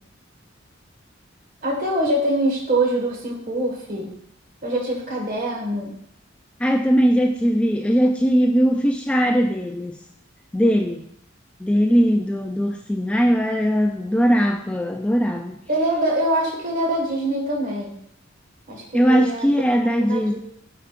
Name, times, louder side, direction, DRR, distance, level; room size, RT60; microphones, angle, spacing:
voice 1, 1.6-4.1 4.6-5.9 15.7-17.9 18.7-19.5 20.1-20.4, right 1 dB, 45° right, -1 dB, 1.7 m, -24 dB
voice 2, 6.6-10.0 10.5-11.0 11.6-15.6 18.9-20.4, equal, 5° left, 3 dB, 0.3 m, -20 dB
8.8 x 4.9 x 2.5 m, 0.71 s
head